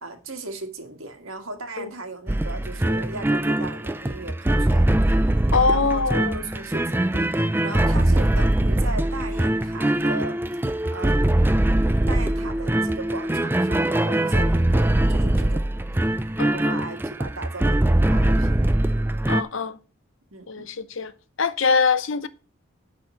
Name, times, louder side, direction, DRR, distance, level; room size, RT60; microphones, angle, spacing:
voice 1, 0.0-4.9 5.7-7.3 7.6-10.4 10.9-11.5 12.1-15.7 16.5-18.7 20.3-20.7, right 2 dB, 80° right, 1.8 m, -37 dB
sound 1, 2.3-19.4, right 1 dB, 10° right, 0.3 m, -22 dB
voice 2, 5.5-6.4 16.4-16.8 19.3-19.8 20.5-21.1 21.4-22.3, left 5 dB, 70° left, 0.7 m, -23 dB
10.5 x 4.1 x 6.5 m
head